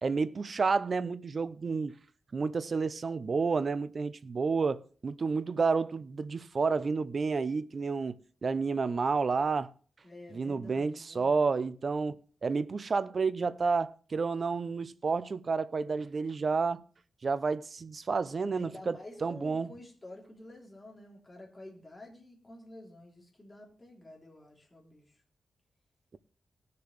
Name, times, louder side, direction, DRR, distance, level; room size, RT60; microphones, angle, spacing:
voice 1, 0.0-1.9 2.3-8.2 8.4-9.7 10.3-16.8 17.2-19.0 19.2-19.7, right 4 dB, 45° right, 0.6 m, -30 dB
voice 2, 10.0-11.5 18.5-25.1, left 1 dB, 20° left, 3.3 m, -50 dB
19.0 x 6.8 x 3.2 m
wide cardioid pair, 125°, 0 cm